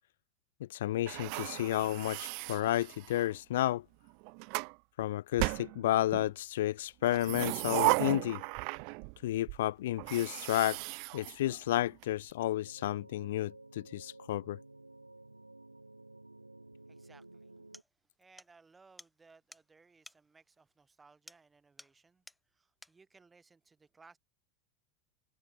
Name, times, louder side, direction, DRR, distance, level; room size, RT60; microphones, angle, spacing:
voice 1, 0.7-3.8 5.0-8.4 9.2-10.8 11.1-14.6, left 14 dB, 60° left, 0.6 m, -31 dB
sound 1, 1.1-3.3 4.1-4.7 5.4-6.3 7.0-9.2 9.5-9.6 10.0-12.0, right 39 dB, 50° right, 0.6 m, -35 dB
sound 2, 12.6-17.8, right 2 dB, 85° right, 6.4 m, -54 dB
voice 2, 16.9-17.7 18.2-22.2 22.5-24.2, right 4 dB, 15° right, 5.6 m, -62 dB
sound 3, 17.2-17.3 17.7-17.9 18.4-18.5 19.0-19.1 19.5-19.7 20.1-20.2 21.3-21.5 21.8-22.0 22.3-22.4 22.8-23.0, left 1 dB, 5° left, 6.5 m, -54 dB
figure-of-eight pair, 80°, 0 cm